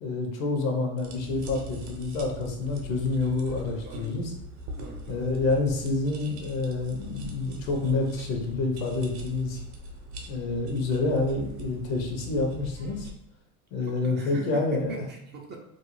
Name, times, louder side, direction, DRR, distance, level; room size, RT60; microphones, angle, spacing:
voice 1, 0.0-4.3 5.1-9.6 10.3-13.1 13.7-15.0, left 3 dB, 75° left, 1 dB, 0.8 m, -28 dB
sound 1, 1.0-13.1, equal, 55° right, 0.7 m, -41 dB
voice 2, 3.8-4.2 4.8-5.3 13.8-15.6, right 3 dB, 25° right, 0 dB, 0.3 m, -42 dB
2.6 x 2.0 x 3.0 m, 0.82 s
hypercardioid pair, 85°, 43 cm